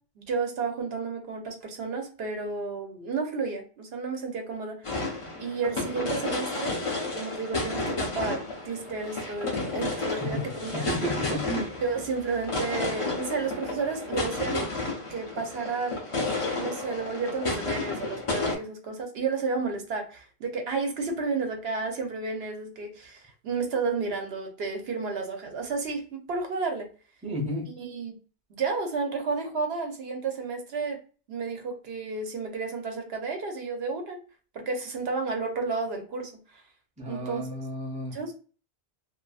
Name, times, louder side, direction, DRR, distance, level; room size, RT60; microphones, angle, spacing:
voice 1, 0.2-5.0 5.4-6.8 7.1-10.9 11.8-14.7 15.1-16.0 16.5-26.9 27.8-28.2 28.5-31.0 31.3-34.2 34.5-36.6 37.1-37.5 38.1-38.3, right 4 dB, 70° right, 0.9 m, -32 dB
sound 1, 4.8-18.5, left 2 dB, 35° left, 0.6 m, -32 dB
voice 2, 10.7-11.7 27.2-27.7 37.0-38.2, equal, 10° right, 0.6 m, -32 dB
2.5 x 2.5 x 2.3 m
omnidirectional pair, 1.1 m